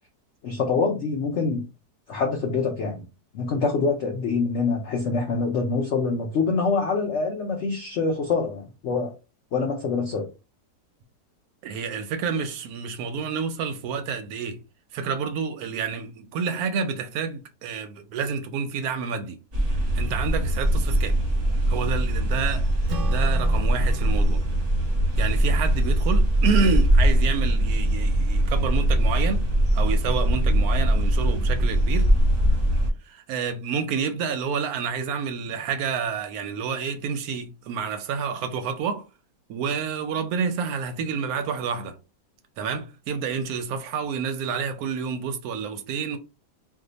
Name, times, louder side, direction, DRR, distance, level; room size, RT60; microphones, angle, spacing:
voice 1, 0.4-1.6 2.1-3.0 3.3-9.1 9.5-10.3, left 4 dB, 90° left, 0.6 m, -25 dB
voice 2, 11.6-14.6 14.9-19.4 19.9-21.2 21.7-22.7 23.0-24.4 25.2-29.4 29.7-32.1 33.1-39.1 39.5-41.9 42.6-46.2, right 6 dB, 70° right, 0.9 m, -29 dB
sound 1, 19.5-32.9, right 1 dB, 35° right, 0.6 m, -21 dB
Acoustic guitar / Strum, 22.9-27.6, right 1 dB, 90° right, 1.2 m, -41 dB
2.7 x 2.3 x 3.9 m
omnidirectional pair, 1.9 m